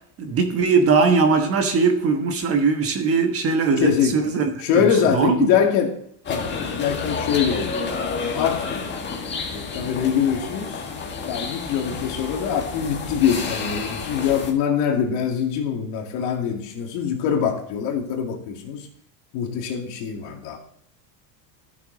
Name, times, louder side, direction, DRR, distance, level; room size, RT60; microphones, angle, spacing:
voice 1, 0.2-4.4 4.7-5.5, right 4 dB, 30° right, 5 dB, 1.2 m, -20 dB
voice 2, 3.8-4.2 4.6-6.0 6.3-7.8 8.3-9.0 9.5-10.8 11.3-18.9 19.3-20.6, left 8 dB, 60° left, 1 dB, 2.4 m, -23 dB
sound 1, 6.2-14.5, left 4 dB, 20° left, 1.7 m, -30 dB
13.0 x 6.8 x 4.0 m, 0.70 s
cardioid pair, 160°, 48 cm